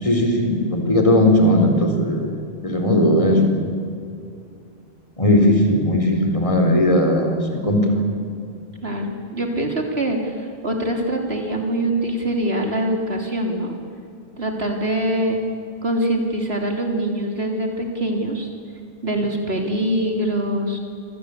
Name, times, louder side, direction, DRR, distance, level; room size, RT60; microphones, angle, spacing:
voice 1, 0.0-2.3 2.6-3.4 5.2-8.0, left 1 dB, 30° left, 3 dB, 4.2 m, -17 dB
voice 2, 8.8-13.7 14.4-15.4 15.8-18.5 19.0-20.8, right 1 dB, 75° right, 2 dB, 3.7 m, -23 dB
28.0 x 24.0 x 8.4 m, 2.5 s
omnidirectional pair, 1.1 m